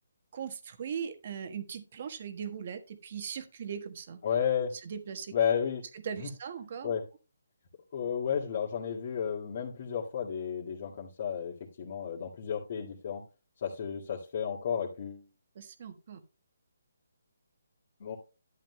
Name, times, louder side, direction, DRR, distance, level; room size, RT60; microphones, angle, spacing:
voice 1, 0.3-4.2 4.8-5.3 6.0-6.9 15.5-16.2, right 7 dB, 45° right, 8 dB, 1.3 m, -39 dB
voice 2, 4.2-4.7 5.3-5.8 6.2-6.3 6.8-7.0 7.9-13.2 13.6-15.2 18.0-18.2, left 8 dB, 45° left, -3 dB, 2.0 m, -32 dB
11.5 x 9.3 x 2.2 m, 0.31 s
hypercardioid pair, 155°, 0 cm